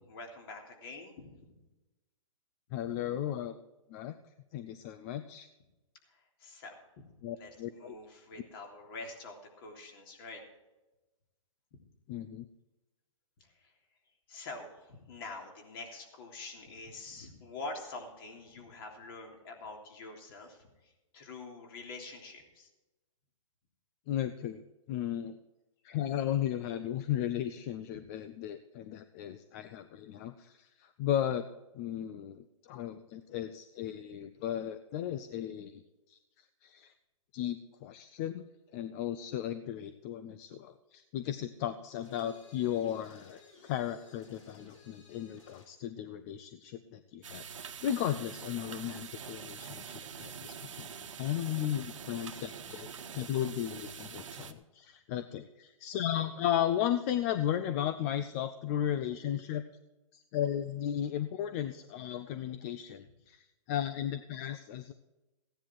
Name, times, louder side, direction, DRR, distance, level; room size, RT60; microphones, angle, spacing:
voice 1, 0.1-1.3 6.1-7.1 7.3-10.4 13.4-13.7 14.3-22.7 27.9-28.0 47.3-47.4, left 3 dB, 45° left, 2 dB, 3.3 m, -46 dB
voice 2, 2.7-3.6 3.9-4.1 4.5-5.5 7.2-7.9 12.1-12.5 24.1-25.4 25.8-31.5 31.7-35.8 36.1-36.2 36.6-36.9 37.3-38.5 38.7-59.7 60.1-64.9, left 11 dB, 30° left, 11 dB, 0.5 m, -35 dB
sound 1, 42.0-45.8, left 3 dB, 75° left, 5.2 m, -58 dB
sound 2, 47.2-54.5, right 7 dB, 70° right, 1.4 m, -45 dB
16.0 x 10.0 x 4.6 m, 1.1 s
hypercardioid pair, 150°, 17 cm